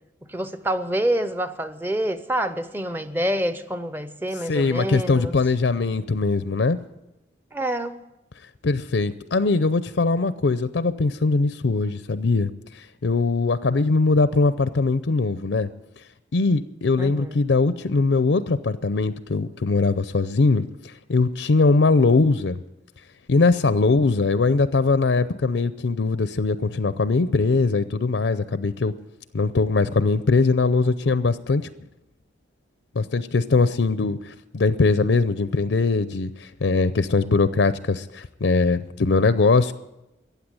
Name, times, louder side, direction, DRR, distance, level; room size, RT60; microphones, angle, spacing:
voice 1, 0.3-5.4 7.5-8.0 17.0-17.4, right 1 dB, 10° right, 0.7 m, -27 dB
voice 2, 4.5-6.8 8.6-12.5 12.7-15.7 16.3-22.6 23.3-28.9 29.3-31.7 32.9-39.7, left 3 dB, 75° left, 0.6 m, -21 dB
15.0 x 8.4 x 9.7 m
head